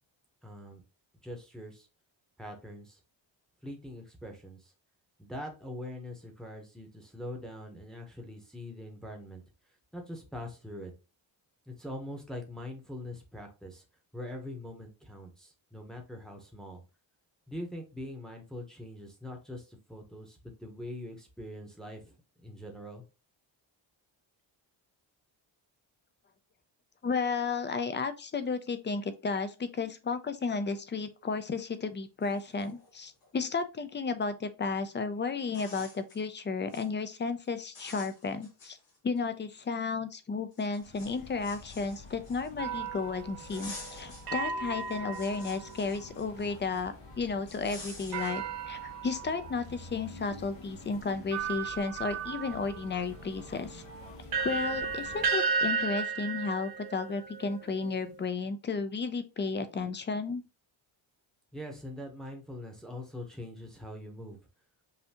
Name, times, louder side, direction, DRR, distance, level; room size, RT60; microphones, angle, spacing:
voice 1, 0.4-0.8 1.2-1.9 2.4-3.0 3.6-4.7 5.2-9.4 9.9-10.9 11.7-13.8 14.1-16.8 17.5-22.1 22.4-23.0 61.5-64.4, left 1 dB, ahead, 2 dB, 0.8 m, -43 dB
voice 2, 27.0-38.8 39.0-53.8 54.4-60.4, left 4 dB, 25° left, 11 dB, 0.3 m, -33 dB
sound 1, 32.2-33.3 34.8-34.9 35.4-36.2 36.6-36.9 37.3-37.5 37.7-39.2 39.6-39.7 40.5-42.7 43.4-44.3 44.7-46.8 47.5-48.4, left 3 dB, 60° left, 2.6 m, -49 dB
sound 2, 40.8-55.3, left 2 dB, 85° left, 1.8 m, -49 dB
sound 3, 42.6-46.1 48.1-49.6 50.4-50.5 51.3-58.2, right 5 dB, 50° right, 0.7 m, -35 dB
5.6 x 2.6 x 2.8 m, 0.29 s
wide cardioid pair, 160°, 48 cm